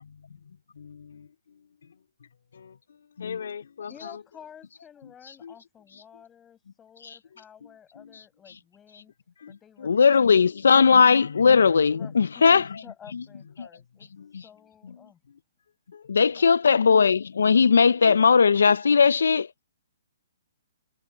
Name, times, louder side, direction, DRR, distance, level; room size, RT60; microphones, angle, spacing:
voice 1, 0.0-4.2 5.0-5.1 5.4-5.5 6.1-6.2 7.6-8.2 9.4-9.5 9.8-12.1 13.1-13.5 14.2-14.3 14.9-15.4 15.9-17.1 17.8-18.2, left 7 dB, 65° left, 2.8 m, -44 dB
voice 2, 3.9-9.1 9.5-10.5 11.9-15.2 16.3-16.5, left 8 dB, 10° left, 5.7 m, -51 dB
voice 3, 9.9-12.7 14.3-14.4 16.1-19.5, left 5 dB, 90° left, 0.4 m, -18 dB
hypercardioid pair, 175°, 0 cm